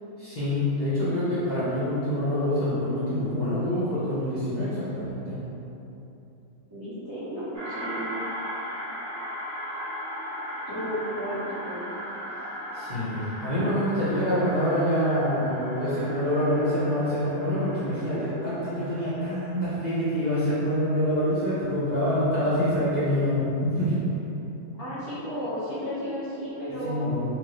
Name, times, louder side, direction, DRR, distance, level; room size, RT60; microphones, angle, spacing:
voice 1, 0.2-5.4 12.7-24.0 26.8-27.2, equal, 35° left, -13 dB, 0.8 m, -26 dB
voice 2, 6.7-8.1 10.7-11.8 24.8-27.2, equal, 20° right, -12 dB, 0.7 m, -33 dB
sound 1, 7.5-20.2, equal, 60° right, 1.8 m, -37 dB
4.4 x 2.7 x 3.1 m, 2.9 s
omnidirectional pair, 1.6 m